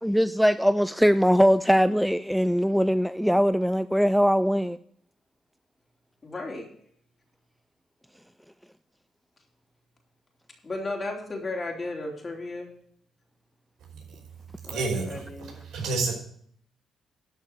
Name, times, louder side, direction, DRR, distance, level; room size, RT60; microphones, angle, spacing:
voice 1, 0.0-4.8, equal, ahead, 0.3 m, -21 dB
voice 2, 6.2-6.7 10.6-12.7 14.6-15.6, left 2 dB, 30° left, 3.3 m, -34 dB
voice 3, 14.7-15.2 15.7-16.1, right 3 dB, 80° right, 5.2 m, -28 dB
12.0 x 5.7 x 8.1 m
cardioid pair, 90°, 0 cm